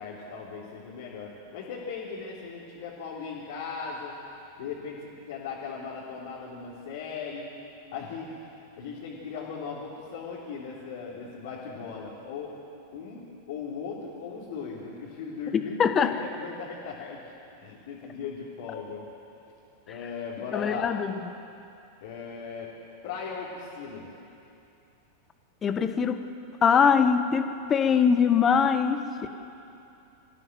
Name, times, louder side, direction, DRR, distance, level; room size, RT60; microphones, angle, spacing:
voice 1, 0.0-4.2 4.6-7.5 7.9-12.5 12.9-17.2 17.6-19.1 19.9-20.9 22.0-22.7 23.0-24.1, left 5 dB, 55° left, -5 dB, 3.7 m, -38 dB
voice 2, 15.8-16.1 20.5-21.1 25.6-26.2 26.6-29.3, left 6 dB, 25° left, 9 dB, 1.4 m, -22 dB
27.0 x 15.5 x 8.0 m, 2.7 s
figure-of-eight pair, 90°, 0 cm